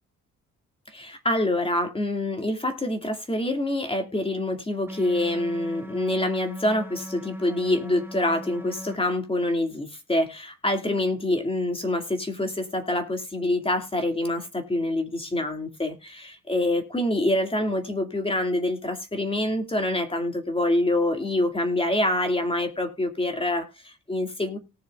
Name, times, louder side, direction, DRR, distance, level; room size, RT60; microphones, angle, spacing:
voice 1, 0.9-24.6, left 1 dB, 20° left, 6 dB, 2.3 m, -26 dB
sound 1, 4.9-9.0, equal, 5° right, 1.5 m, -39 dB
19.0 x 6.5 x 2.4 m, 0.29 s
cardioid pair, 90°, 30 cm